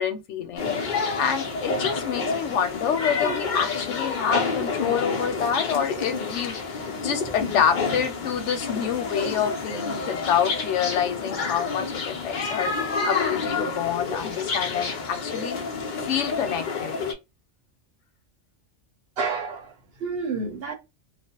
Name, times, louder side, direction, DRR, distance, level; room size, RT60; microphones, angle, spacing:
voice 1, 0.0-12.7 13.0-15.6 16.0-17.0, left 8 dB, 90° left, 0.9 m, -27 dB
sound 1, 0.6-17.1, left 4 dB, 50° left, 0.7 m, -29 dB
voice 2, 19.2-20.7, right 4 dB, 65° right, 0.9 m, -30 dB
2.5 x 2.0 x 2.7 m
omnidirectional pair, 1.2 m